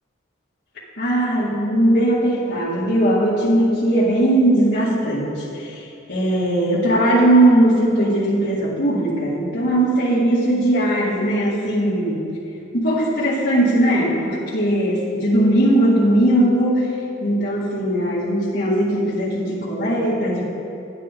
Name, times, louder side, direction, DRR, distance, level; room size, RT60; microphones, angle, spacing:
voice 1, 1.0-12.2 12.7-16.9 17.2-20.4, right 1 dB, 55° left, -9 dB, 2.0 m, -19 dB
10.5 x 9.5 x 3.8 m, 2.7 s
head